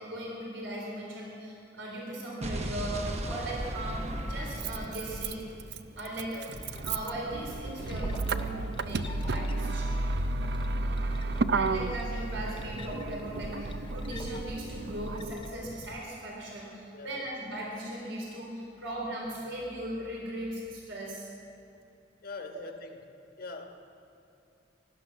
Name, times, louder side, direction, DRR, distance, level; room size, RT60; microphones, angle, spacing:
voice 1, 0.0-6.5 6.8-10.0 11.5-21.3 22.5-22.6, right 1 dB, 75° right, -3 dB, 4.0 m, -38 dB
Explosion, 2.4-6.5, right 1 dB, 35° right, 0.9 m, -37 dB
Motor vehicle (road), 2.9-3.0 4.2-15.3, right 3 dB, 60° right, 0.5 m, -32 dB
sound 1, 6.5-16.0, left 2 dB, 25° left, 0.6 m, -44 dB
voice 2, 11.6-12.0 16.9-17.3 22.2-23.0 23.4-23.8, left 3 dB, 50° left, 4 dB, 1.3 m, -43 dB
17.0 x 12.0 x 6.3 m, 2.8 s
head